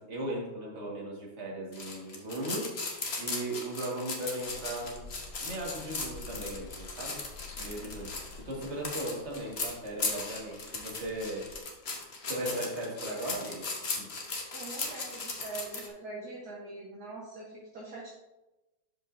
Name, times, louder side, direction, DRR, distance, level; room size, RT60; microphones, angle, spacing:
voice 1, 0.0-2.7 3.2-5.1 5.4-7.2 7.6-11.5 11.9-13.7 13.9-14.1, right 1 dB, 35° right, -3 dB, 1.9 m, -37 dB
sound 1, 1.7-15.9, left 3 dB, 40° left, 1.1 m, -37 dB
sound 2, 4.4-11.6, left 3 dB, 80° left, 1.7 m, -50 dB
voice 2, 14.5-18.1, right 3 dB, 55° right, -5 dB, 1.6 m, -43 dB
11.5 x 5.2 x 2.7 m, 1.0 s
omnidirectional pair, 2.2 m